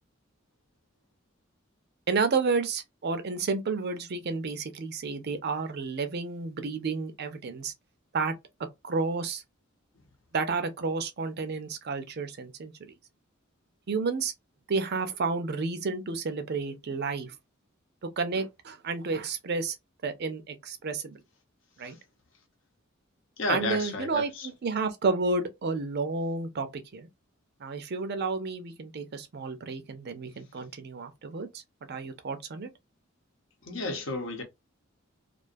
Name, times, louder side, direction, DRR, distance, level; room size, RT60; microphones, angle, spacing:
voice 1, 2.1-7.7 8.1-8.3 8.8-9.4 10.3-12.9 13.9-14.3 14.7-17.3 18.0-19.8 20.0-21.2 21.8-22.0 23.5-27.1 27.6-31.6 31.9-32.7, right 4 dB, 50° right, 0.5 m, -31 dB
voice 2, 23.4-24.5 33.6-34.4, left 2 dB, 65° left, 0.8 m, -32 dB
2.4 x 2.3 x 2.5 m
head